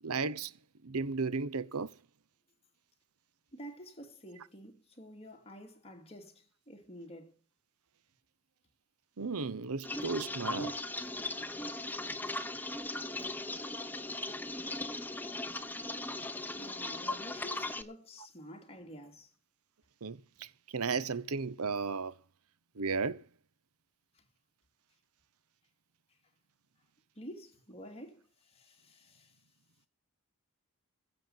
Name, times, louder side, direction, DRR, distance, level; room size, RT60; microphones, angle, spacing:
voice 1, 0.0-0.5 0.8-1.9 9.2-10.7 20.0-22.1 22.8-23.2, right 4 dB, 80° right, 0.9 m, -34 dB
voice 2, 3.5-7.4 13.8-14.0 16.5-19.3 24.1-24.2 27.2-29.3, equal, 30° left, 2.9 m, -50 dB
sound 1, 9.8-17.8, left 2 dB, 10° left, 1.0 m, -38 dB
16.0 x 7.9 x 7.3 m
head